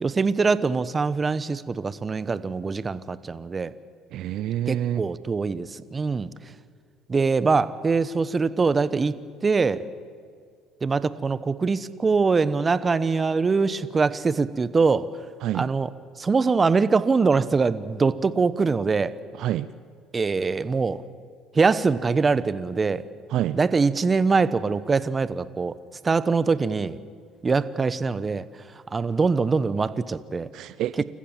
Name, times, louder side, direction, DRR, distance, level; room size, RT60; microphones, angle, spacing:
voice 1, 0.0-3.7 4.7-6.3 7.1-9.1 9.4-9.9 10.8-15.1 15.5-15.9 16.2-19.1 20.1-21.0 21.5-23.0 23.5-25.7 26.0-27.0 27.4-28.4 28.9-30.5 31.0-31.1, right 4 dB, 30° right, 15 dB, 1.0 m, -23 dB
voice 2, 4.1-5.0 15.4-15.7 19.4-19.7 23.3-23.6 30.5-31.0, right 12 dB, 65° right, 15 dB, 0.6 m, -27 dB
28.5 x 15.0 x 7.4 m, 2.2 s
supercardioid pair, 80°, 0 cm